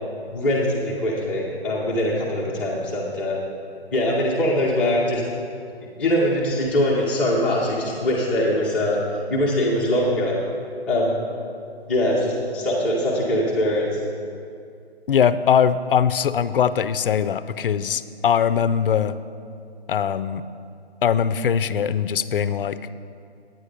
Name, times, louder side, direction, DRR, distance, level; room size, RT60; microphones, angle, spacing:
voice 1, 0.3-3.4 3.9-5.2 6.0-9.0 9.3-10.3 10.9-11.2 11.9-13.9, left 1 dB, 5° left, -6 dB, 0.5 m, -22 dB
voice 2, 15.1-19.2 19.9-20.4 21.0-22.8, left 8 dB, 55° left, 14 dB, 0.5 m, -21 dB
9.9 x 9.2 x 5.0 m, 2.4 s
figure-of-eight pair, 145°, 33 cm